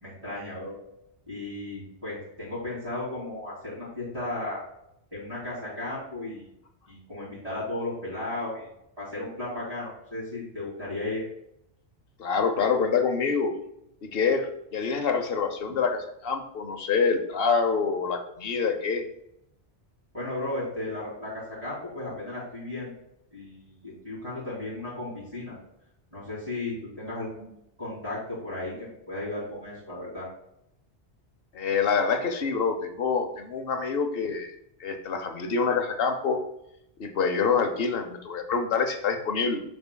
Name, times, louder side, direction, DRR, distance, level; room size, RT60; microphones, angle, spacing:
voice 1, 0.0-0.8 1.3-4.6 5.1-6.5 6.9-8.7 9.0-11.2 20.1-22.9 23.3-25.5 26.1-27.5 27.8-30.3, left 2 dB, 30° right, -10 dB, 2.7 m, -35 dB
voice 2, 12.2-13.5 14.0-19.0 31.5-34.5 34.8-36.4 37.0-39.6, left 5 dB, 60° left, 6 dB, 1.0 m, -26 dB
7.0 x 6.1 x 2.2 m, 0.79 s
omnidirectional pair, 1.2 m